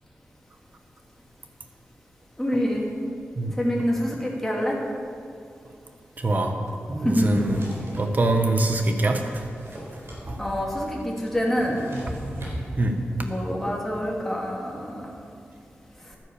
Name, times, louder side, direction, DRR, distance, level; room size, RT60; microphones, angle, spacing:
voice 1, 2.4-2.9 3.6-4.8 7.0-7.4 10.4-11.8 13.2-15.1, equal, 5° left, -3 dB, 2.7 m, -26 dB
voice 2, 6.2-6.5 6.9-7.6 8.0-9.2 10.3-10.4 12.8-12.9, right 2 dB, 40° right, 4 dB, 1.4 m, -23 dB
Drawer open or close, 7.1-8.1 8.7-10.2 10.5-10.6 10.8-12.6, right 1 dB, 70° right, 4.1 m, -37 dB
13.0 x 9.9 x 7.0 m, 2.5 s
wide cardioid pair, 135°, 4 cm